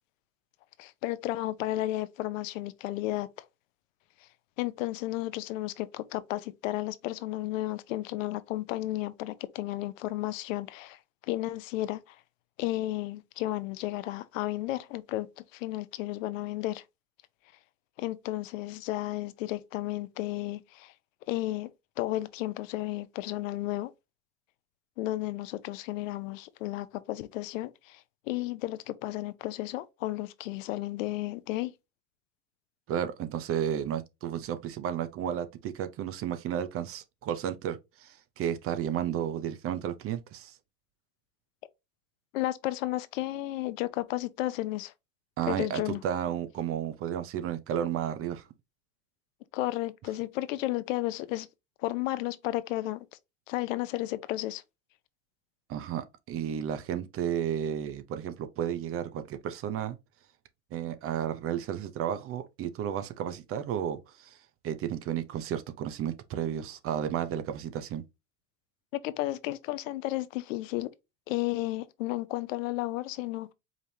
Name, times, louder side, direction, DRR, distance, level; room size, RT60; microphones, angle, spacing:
voice 1, 0.8-3.3 4.6-11.0 11.3-12.0 12.6-16.8 18.0-20.9 21.3-21.7 22.0-23.9 25.0-28.0 28.3-31.7 42.3-44.9 45.5-46.0 49.5-51.5 51.8-53.1 53.5-54.6 69.0-70.9 71.3-73.5, left 16 dB, 80° left, 0.7 m, -33 dB
voice 2, 32.9-40.6 45.4-48.4 55.7-60.0 60.7-64.4 64.6-68.0, right 9 dB, 35° right, 0.6 m, -32 dB
4.9 x 3.4 x 2.7 m
supercardioid pair, 120°, 39 cm